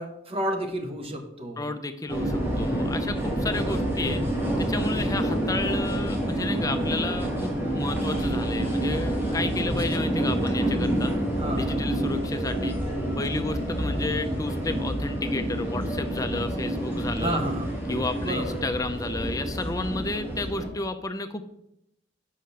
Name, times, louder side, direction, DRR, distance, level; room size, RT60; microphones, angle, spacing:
voice 1, 0.0-1.7 3.6-3.8 9.6-9.8 11.4-11.9 17.2-17.7 18.2-18.5, right 1 dB, 30° right, 4 dB, 1.0 m, -31 dB
voice 2, 1.6-4.2 4.6-11.1 11.6-12.8 13.2-17.4 17.9-21.4, left 2 dB, 20° left, 8 dB, 0.5 m, -32 dB
sound 1, 2.1-20.7, right 1 dB, 10° right, 1.8 m, -28 dB
5.6 x 5.0 x 6.4 m, 0.80 s
head